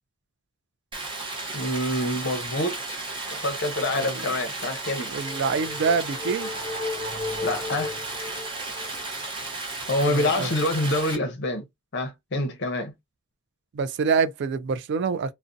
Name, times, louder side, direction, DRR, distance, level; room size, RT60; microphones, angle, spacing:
Stream, 0.9-11.1, right 3 dB, 25° right, 0.7 m, -34 dB
voice 1, 1.5-3.0 3.3-5.1 7.4-8.0 9.9-11.7 11.9-12.9, left 1 dB, 55° left, 0.7 m, -26 dB
sound 1, 4.7-9.0, left 2 dB, 15° left, 0.9 m, -35 dB
voice 2, 5.1-6.5 10.0-10.5 13.7-15.3, right 5 dB, 55° right, 0.3 m, -26 dB
2.5 x 2.1 x 2.5 m
head